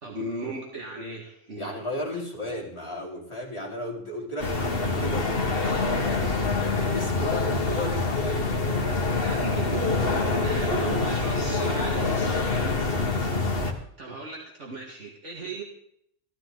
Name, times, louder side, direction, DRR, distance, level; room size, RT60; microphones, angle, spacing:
voice 1, 0.0-1.8 9.2-10.0 10.4-12.8 13.6-15.6, right 2 dB, 65° right, -1 dB, 2.5 m, -37 dB
voice 2, 1.6-8.4, left 1 dB, 20° left, -5 dB, 4.3 m, -35 dB
sound 1, 4.4-13.7, left 3 dB, 50° left, 2.0 m, -25 dB
14.5 x 14.0 x 4.0 m, 0.70 s
omnidirectional pair, 1.3 m